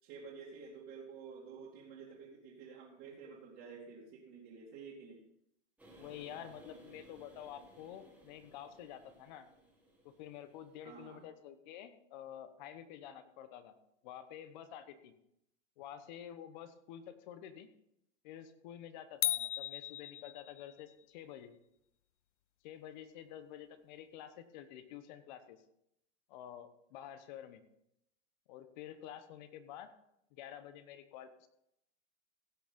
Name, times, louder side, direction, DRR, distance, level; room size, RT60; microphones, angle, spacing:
voice 1, 0.0-5.2 10.8-11.2, right 5 dB, 30° right, -5 dB, 2.5 m, -51 dB
sound 1, 5.8-11.2, right 1 dB, 5° right, 2.0 m, -60 dB
voice 2, 6.0-9.5 10.0-13.8 14.0-15.1 15.8-17.7 18.2-21.5 22.6-25.6 26.3-27.6 28.5-29.9 30.3-31.5, left 10 dB, 40° left, 11 dB, 1.1 m, -49 dB
sound 2, 19.2-20.8, left 14 dB, 80° left, 0.5 m, -36 dB
16.0 x 6.2 x 5.3 m, 0.80 s
supercardioid pair, 155°, 36 cm